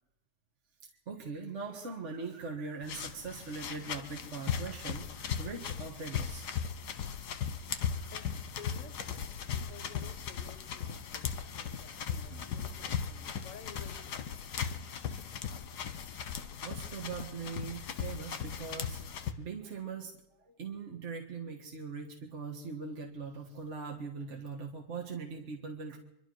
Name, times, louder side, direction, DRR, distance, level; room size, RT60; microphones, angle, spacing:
voice 1, 1.1-6.5 12.3-12.4 16.6-19.0 19.4-20.1 20.5-26.0, right 4 dB, 45° right, 1 dB, 1.8 m, -41 dB
sound 1, 2.8-19.3, left 7 dB, 70° left, 1.6 m, -38 dB
sound 2, 7.9-15.7 16.0-16.2 16.6-16.7, left 3 dB, 15° left, 3.3 m, -64 dB
voice 2, 8.1-14.2, left 6 dB, 50° left, 8 dB, 1.6 m, -53 dB
25.0 x 12.0 x 4.7 m, 0.91 s
omnidirectional pair, 1.9 m